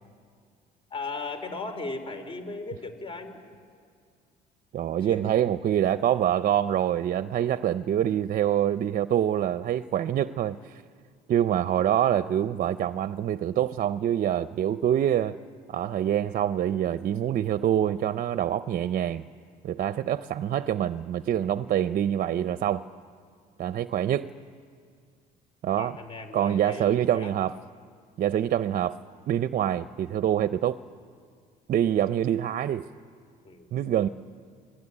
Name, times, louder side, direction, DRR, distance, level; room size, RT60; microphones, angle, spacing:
voice 1, 0.9-3.4 5.0-5.5 25.8-27.3 33.4-33.7, left 3 dB, 30° left, 8 dB, 4.0 m, -37 dB
voice 2, 4.7-10.8 11.3-15.4 15.7-19.2 19.6-22.8 23.6-24.3 25.6-26.0 26.3-27.5 28.2-29.0 29.3-30.8 31.7-32.9 33.7-34.1, right 10 dB, 50° right, 13 dB, 0.6 m, -25 dB
26.5 x 19.5 x 9.9 m, 2.1 s
cardioid pair, 110°, 17 cm